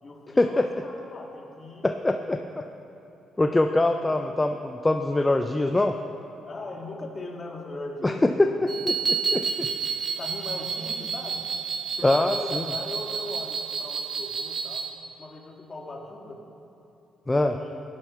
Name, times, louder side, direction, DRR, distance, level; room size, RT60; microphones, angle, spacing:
voice 1, 0.0-1.9 3.7-4.2 6.5-8.7 9.2-9.4 10.2-11.5 12.0-14.9 15.2-16.4 17.3-17.8, left 2 dB, 35° left, 1 dB, 2.0 m, -39 dB
voice 2, 1.8-2.6 3.4-5.9 8.0-8.3 8.6-9.7 12.0-12.6 17.3-17.5, left 2 dB, 15° left, 5 dB, 0.6 m, -24 dB
sound 1, 8.7-14.9, right 5 dB, 30° right, 1.8 m, -30 dB
17.0 x 9.1 x 5.6 m, 2.9 s
cardioid pair, 90°, 0 cm